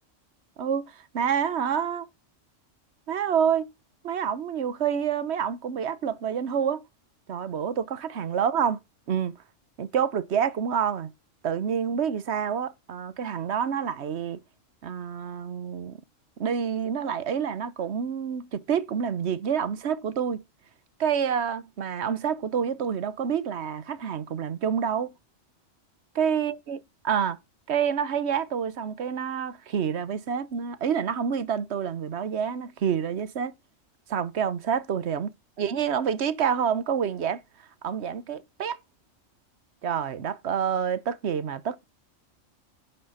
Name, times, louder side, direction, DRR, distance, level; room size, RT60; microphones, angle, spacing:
voice 1, 0.6-2.1 3.1-3.7 4.0-6.8 7.3-8.8 9.1-9.3 9.8-11.1 11.4-14.4 14.8-16.0 16.4-20.4 21.0-25.1 26.1-26.8 27.0-27.4 27.7-33.5 34.1-35.3 35.6-37.4 37.8-38.8 39.8-41.8, right 7 dB, 60° right, 1.1 m, -28 dB
11.0 x 5.5 x 5.6 m
omnidirectional pair, 1.3 m